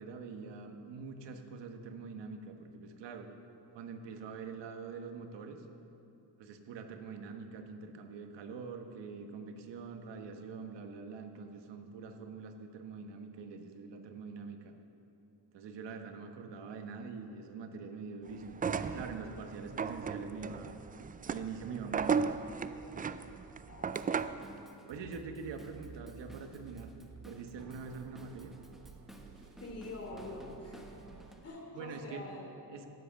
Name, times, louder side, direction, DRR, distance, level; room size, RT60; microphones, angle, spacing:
voice 1, 0.0-3.3 3.7-5.6 6.4-14.7 15.5-20.8 21.2-22.3 24.9-26.9 27.2-28.5 31.7-32.2 32.7-32.9, right 5 dB, 80° right, 5 dB, 1.4 m, -44 dB
sound 1, 18.5-24.5, right 6 dB, 20° right, 0.3 m, -35 dB
voice 2, 23.7-24.3 29.6-30.9 31.4-32.5, left 2 dB, 35° left, 0 dB, 3.2 m, -46 dB
Drum kit / Drum, 23.9-31.4, right 1 dB, ahead, 1.2 m, -56 dB
sound 2, 24.9-31.3, right 6 dB, 45° right, 0.8 m, -53 dB
17.5 x 7.9 x 7.1 m, 2.9 s
cardioid pair, 110°, 42 cm